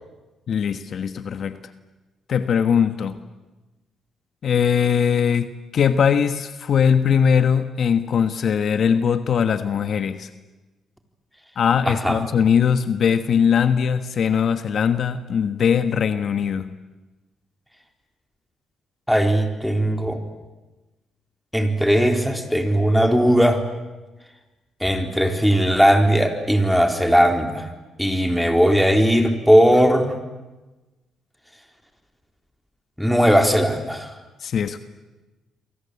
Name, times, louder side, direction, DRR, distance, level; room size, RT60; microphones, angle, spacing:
voice 1, 0.5-1.6 2.3-3.2 4.4-10.3 11.6-16.7 34.4-34.8, left 7 dB, 55° left, 10 dB, 1.3 m, -20 dB
voice 2, 11.9-12.2 19.1-20.2 21.5-23.6 24.8-27.7 28.0-30.2 33.0-34.2, equal, ahead, 4 dB, 4.1 m, -18 dB
28.0 x 24.0 x 8.4 m, 1.1 s
cardioid pair, 90°, 0 cm